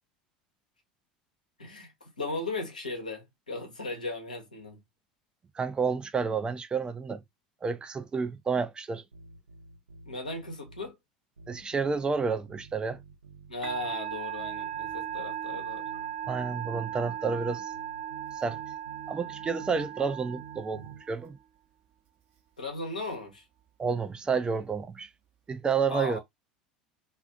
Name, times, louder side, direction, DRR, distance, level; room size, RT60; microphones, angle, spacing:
voice 1, 1.6-4.8 10.0-11.0 13.5-15.9 22.6-23.5 25.9-26.2, left 2 dB, 90° left, 0.9 m, -37 dB
voice 2, 5.5-7.2 7.6-9.0 11.5-13.0 16.3-17.7 18.4-18.6 19.1-21.4 23.8-25.1 25.5-26.2, right 5 dB, 20° right, 0.4 m, -30 dB
sound 1, 9.1-10.9 11.4-14.0 14.4-16.9 17.4-19.9 20.4-21.0, right 5 dB, 85° right, 0.8 m, -51 dB
Musical instrument, 13.6-21.3, right 10 dB, 50° right, 0.8 m, -37 dB
2.5 x 2.4 x 2.5 m
figure-of-eight pair, 75°, 4 cm